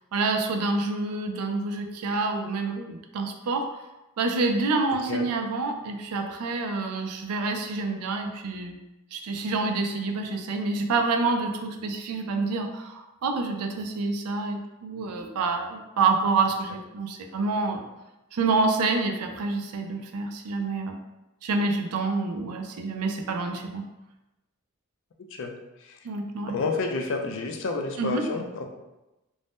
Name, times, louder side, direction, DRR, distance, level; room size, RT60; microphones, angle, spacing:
voice 1, 0.1-3.8 4.2-8.8 9.1-17.8 18.3-21.0 21.4-23.8 26.0-26.6 28.0-28.3, right 3 dB, 85° right, 4 dB, 0.4 m, -27 dB
voice 2, 26.5-28.7, left 3 dB, 55° left, 3 dB, 0.4 m, -29 dB
2.6 x 2.0 x 3.4 m, 1.0 s
head